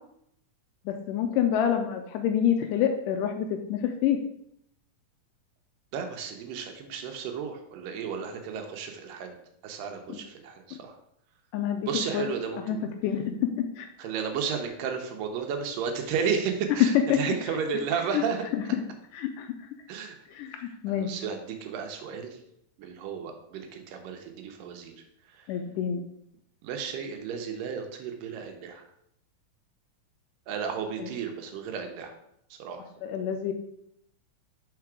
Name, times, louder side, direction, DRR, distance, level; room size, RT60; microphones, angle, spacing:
voice 1, 0.9-4.2 10.1-10.2 11.5-12.3 12.7-13.9 17.1-17.2 17.5-17.6 18.1-18.2 18.5-18.8 19.1-19.5 20.3-21.1 25.5-26.0 31.0-31.1 33.0-33.5, left 9 dB, 80° left, 6 dB, 1.9 m, -28 dB
voice 2, 5.9-9.4 9.6-11.0 11.9-12.8 14.0-18.5 19.9-20.2 20.6-22.4 22.8-25.0 26.6-28.8 30.5-32.1 32.6-32.9, right 6 dB, 80° right, 5 dB, 2.3 m, -33 dB
5.1 x 4.8 x 4.6 m, 0.75 s
omnidirectional pair, 4.0 m